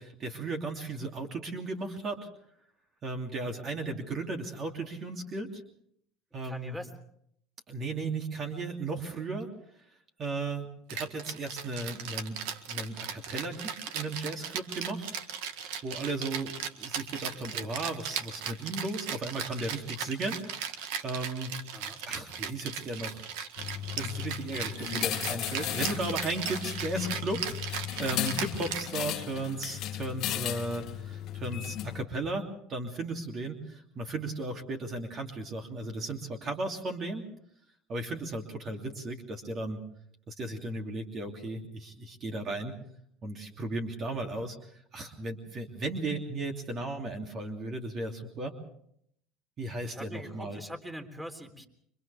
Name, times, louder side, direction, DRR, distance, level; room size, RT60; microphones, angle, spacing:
voice 1, 0.0-2.3 3.0-5.6 6.3-6.8 7.7-9.5 10.2-15.1 15.8-21.5 22.1-23.2 24.0-27.4 28.0-37.2 37.9-39.8 40.3-42.7 43.2-44.6 44.9-48.5 49.6-50.6, right 2 dB, 45° right, 3 dB, 2.9 m, -35 dB
voice 2, 6.4-6.9 21.7-22.0 49.9-51.7, equal, 10° right, 6 dB, 3.6 m, -42 dB
Rattle (instrument), 10.9-29.4, right 7 dB, 80° right, 1.7 m, -37 dB
sound 1, 23.6-32.0, left 12 dB, 60° left, 1.1 m, -36 dB
29.5 x 24.5 x 3.5 m, 0.69 s
supercardioid pair, 85°, 0 cm